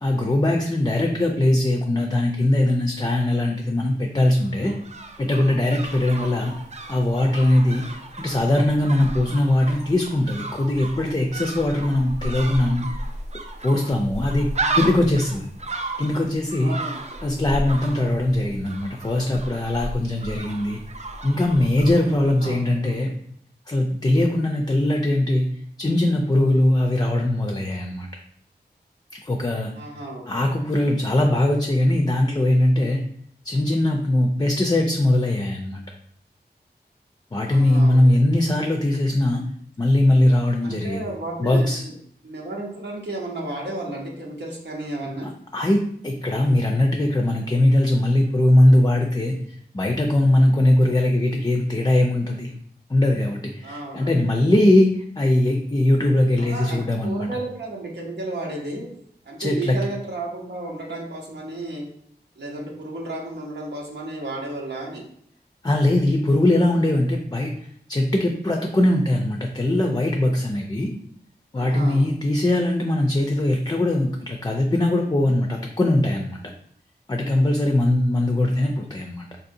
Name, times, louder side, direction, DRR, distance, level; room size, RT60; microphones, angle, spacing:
voice 1, 0.0-4.8 5.2-6.5 6.9-12.9 13.6-15.5 16.0-16.7 17.2-20.8 21.2-23.1 23.7-28.1 29.1-29.7 30.3-33.0 33.4-35.8 37.3-39.4 39.8-41.0 41.4-41.8 45.5-52.5 52.9-57.3 59.4-59.8 65.6-67.5 67.9-70.9 71.5-76.4 77.1-79.3, left 1 dB, 25° left, 2 dB, 0.4 m, -20 dB
sound 1, 4.4-22.6 22.8-22.9, right 2 dB, 40° right, 0.5 m, -33 dB
voice 2, 16.6-17.1 22.2-22.9 29.7-30.5 37.4-38.3 40.6-41.9 42.2-45.3 53.6-54.2 56.4-58.8 59.2-61.9 62.4-65.0 71.6-72.0, right 2 dB, 85° right, -3 dB, 0.9 m, -33 dB
4.0 x 2.7 x 2.6 m, 0.67 s
cardioid pair, 40°, 18 cm